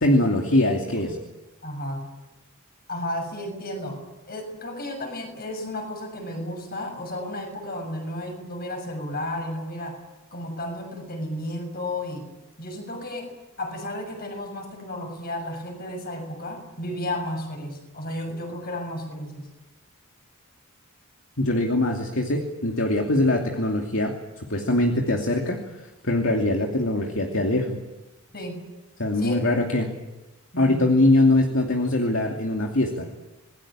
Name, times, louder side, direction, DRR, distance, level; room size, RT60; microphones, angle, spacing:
voice 1, 0.0-1.2 21.4-27.8 29.0-29.9 30.6-33.1, left 1 dB, 60° left, 2 dB, 2.7 m, -22 dB
voice 2, 1.6-2.1 2.9-4.0 4.3-10.0 10.3-12.3 12.6-13.3 13.6-19.5 28.3-28.6 29.1-29.5 30.5-30.9, left 1 dB, 45° left, 4 dB, 6.7 m, -33 dB
27.0 x 21.0 x 8.9 m, 1.1 s
head